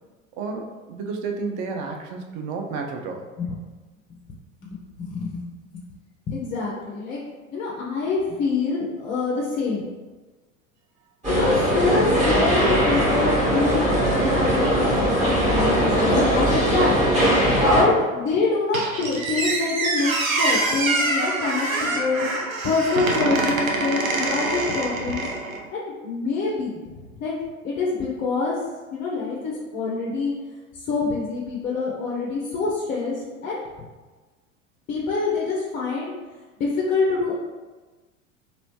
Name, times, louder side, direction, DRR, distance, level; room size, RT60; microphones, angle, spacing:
voice 1, 0.4-3.3 17.9-18.0, right 4 dB, 40° right, 3 dB, 0.5 m, -31 dB
voice 2, 4.7-5.5 5.7-5.8 6.3-7.2 7.5-9.9 11.4-14.6 15.0-17.0 17.7-22.3 22.6-25.3 25.7-27.3 27.6-28.6 28.9-30.3 30.7-33.6 34.9-36.1 36.6-37.3, left 4 dB, 20° left, -4 dB, 0.4 m, -26 dB
sound 1, 11.2-17.8, equal, 15° right, 1.1 m, -20 dB
Squeak, 18.7-25.6, right 2 dB, 80° right, 0.7 m, -25 dB
3.0 x 2.6 x 3.0 m, 1.3 s
figure-of-eight pair, 80°, 40 cm